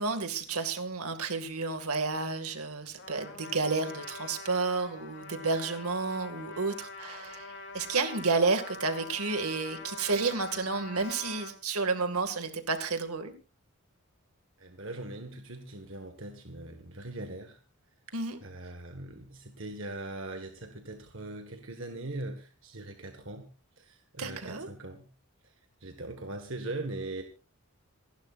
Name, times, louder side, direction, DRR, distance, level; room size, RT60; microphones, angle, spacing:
voice 1, 0.0-13.3 18.1-18.4 24.2-24.7, right 4 dB, 80° right, 7 dB, 2.2 m, -31 dB
Trumpet, 3.0-11.5, left 3 dB, 50° left, 2.9 m, -44 dB
voice 2, 14.6-17.6 18.4-23.5 23.8-25.1 25.8-27.2, right 2 dB, 60° right, 5 dB, 1.7 m, -40 dB
27.5 x 11.5 x 2.5 m, 0.33 s
head